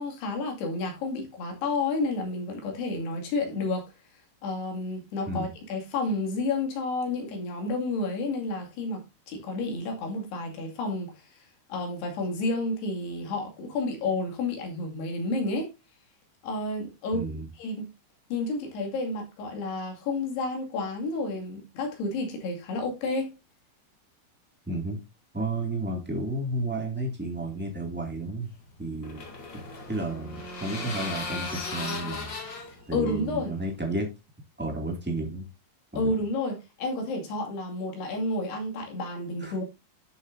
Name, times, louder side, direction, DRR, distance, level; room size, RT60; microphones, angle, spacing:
voice 1, 0.0-3.9 4.4-15.7 16.4-17.3 17.6-17.9 18.3-23.3 32.7-33.5 36.0-39.6, left 2 dB, 80° left, 4.4 m, -31 dB
voice 2, 17.1-17.5 24.7-25.0 25.3-28.5 28.8-29.2 29.5-29.6 29.9-32.3 32.9-34.1 34.6-35.5 35.9-36.1 39.4-39.6, right 2 dB, 10° right, 0.5 m, -32 dB
sound 1, 28.5-34.0, left 3 dB, 35° left, 2.1 m, -37 dB
11.5 x 7.0 x 2.6 m
omnidirectional pair, 4.7 m